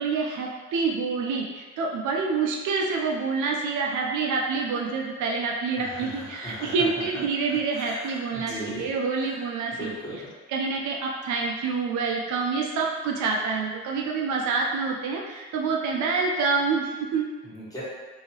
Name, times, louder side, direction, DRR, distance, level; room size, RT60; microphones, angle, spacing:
voice 1, 0.0-9.9 10.5-17.3, right 4 dB, 75° right, -1 dB, 0.5 m, -27 dB
voice 2, 5.8-6.7 7.7-8.9 9.1-9.4 9.7-10.3 17.4-17.8, equal, 10° left, -10 dB, 1.3 m, -38 dB
2.8 x 2.8 x 2.8 m, 1.3 s
cardioid pair, 90°, 30 cm